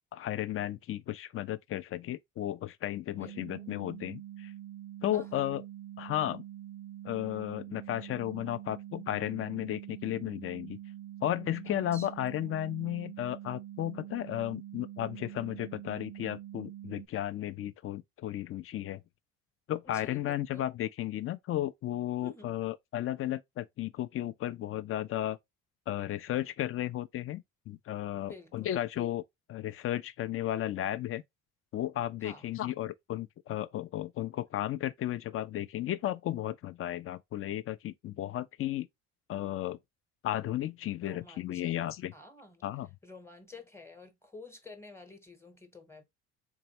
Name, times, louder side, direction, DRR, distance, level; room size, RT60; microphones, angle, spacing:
voice 1, 0.1-4.5 5.0-5.6 6.0-6.4 7.0-10.8 11.2-19.0 19.7-25.4 25.9-29.2 29.5-31.2 31.7-38.9 39.3-39.8 40.2-42.1 42.6-42.9, left 13 dB, 40° left, 0.4 m, -34 dB
voice 2, 3.1-3.7 5.1-5.4 11.7-12.7 19.8-20.7 22.2-22.5 28.2-28.8 32.2-32.5 41.0-41.7 42.1-42.6 43.0-46.0, left 3 dB, 5° left, 0.9 m, -51 dB
sound 1, 3.2-17.1, right 12 dB, 70° right, 0.5 m, -45 dB
3.5 x 3.0 x 2.8 m
supercardioid pair, 65°, 35 cm